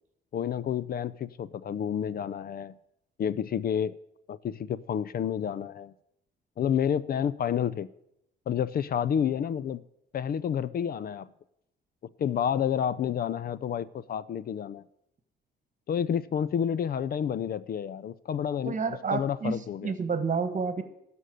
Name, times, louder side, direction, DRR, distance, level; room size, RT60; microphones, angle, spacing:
voice 1, 0.3-2.8 3.2-4.0 4.3-5.9 6.6-7.9 8.5-9.8 10.1-11.3 12.2-14.8 15.9-19.9, left 8 dB, 50° left, 0.4 m, -29 dB
voice 2, 18.6-20.8, right 5 dB, 40° right, 1.4 m, -30 dB
13.0 x 5.3 x 9.1 m
cardioid pair, 90°, 20 cm